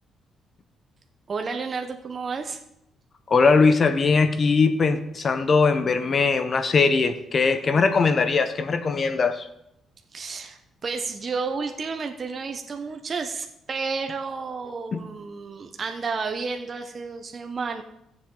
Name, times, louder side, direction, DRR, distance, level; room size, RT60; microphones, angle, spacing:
voice 1, 1.3-2.6 10.1-17.8, right 4 dB, 40° right, 5 dB, 0.9 m, -31 dB
voice 2, 3.3-9.5 14.9-15.0, left 4 dB, 45° left, 10 dB, 0.9 m, -20 dB
15.0 x 7.4 x 3.9 m, 0.81 s
cardioid pair, 90°, 0 cm